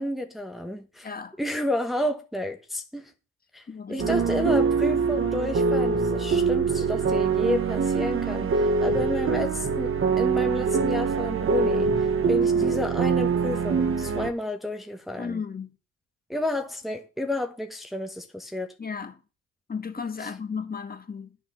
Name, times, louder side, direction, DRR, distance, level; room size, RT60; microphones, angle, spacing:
voice 1, 0.0-1.1 1.4-3.1 3.5-15.4 16.3-18.7 20.2-20.3, left 1 dB, ahead, 1.2 m, -31 dB
voice 2, 1.0-1.4 3.7-4.1 12.5-12.9 15.2-15.7 18.8-19.2 19.7-21.3, left 6 dB, 30° left, 1.6 m, -34 dB
sound 1, 4.0-14.3, right 5 dB, 45° right, 1.5 m, -24 dB
10.0 x 7.2 x 6.2 m
cardioid pair, 90°, 30 cm